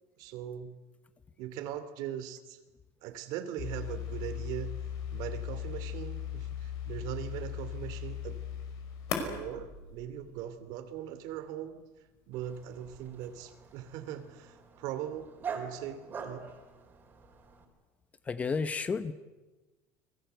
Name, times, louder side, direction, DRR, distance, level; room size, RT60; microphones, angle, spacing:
voice 1, 0.2-0.7 1.4-2.6 3.0-4.8 5.1-8.4 9.1-11.8 12.3-16.5, right 10 dB, 60° right, 11 dB, 2.6 m, -40 dB
sound 1, 3.6-10.5, left 8 dB, 55° left, 5.4 m, -38 dB
Dog, 12.3-17.6, right 6 dB, 25° right, 4.4 m, -45 dB
voice 2, 18.2-19.1, left 5 dB, 20° left, 12 dB, 1.0 m, -31 dB
29.5 x 22.0 x 8.1 m, 1.1 s
cardioid pair, 155°, 8 cm